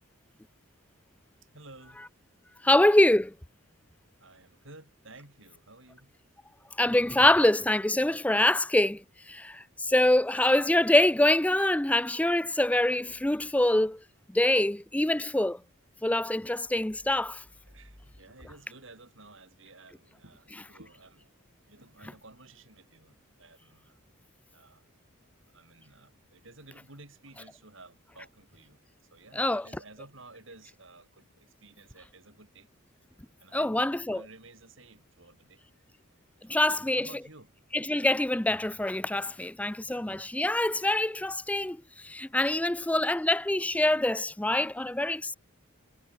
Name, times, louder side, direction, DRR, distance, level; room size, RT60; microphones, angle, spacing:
voice 1, 1.5-2.0 4.2-6.1 17.7-21.3 21.6-24.0 24.5-24.9 25.5-28.8 29.1-32.7 33.4-35.6 36.4-37.5 39.3-39.4, right 2 dB, 60° right, 7.9 m, -53 dB
voice 2, 2.6-3.3 6.8-14.0 14.3-15.6 16.0-17.4 29.4-29.7 33.5-34.2 36.5-37.1 37.7-45.4, left 1 dB, 5° left, 0.5 m, -25 dB
head